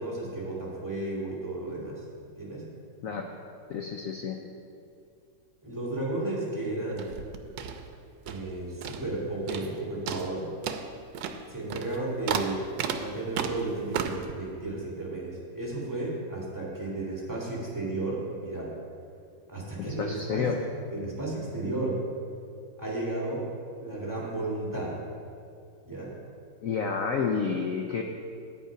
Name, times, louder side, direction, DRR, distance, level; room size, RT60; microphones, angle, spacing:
voice 1, 0.0-2.0 2.4-2.6 5.6-7.2 8.2-10.5 11.5-12.7 12.9-18.7 19.5-20.5 20.9-22.0 22.8-23.5 23.8-25.0 25.8-26.1, right 2 dB, 10° right, -4 dB, 1.9 m, -33 dB
voice 2, 3.7-4.4 19.8-20.6 26.6-28.0, left 5 dB, 75° left, 3 dB, 0.7 m, -30 dB
sound 1, 6.9-8.5 8.8-9.2 9.5-9.8 10.1-14.3, right 7 dB, 85° right, 1.4 m, -34 dB
9.1 x 7.9 x 5.0 m, 2.4 s
omnidirectional pair, 2.1 m